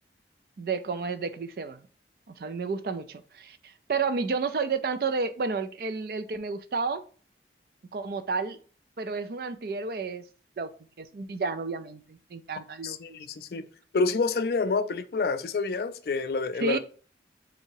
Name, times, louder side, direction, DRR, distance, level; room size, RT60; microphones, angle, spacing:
voice 1, 0.6-1.8 2.3-7.0 7.9-8.6 9.0-10.2 10.6-10.7 11.0-13.2 16.6-16.8, right 4 dB, 55° right, 0.4 m, -31 dB
voice 2, 12.8-13.6 13.9-16.8, left 4 dB, 60° left, 0.4 m, -28 dB
3.8 x 2.7 x 4.5 m
head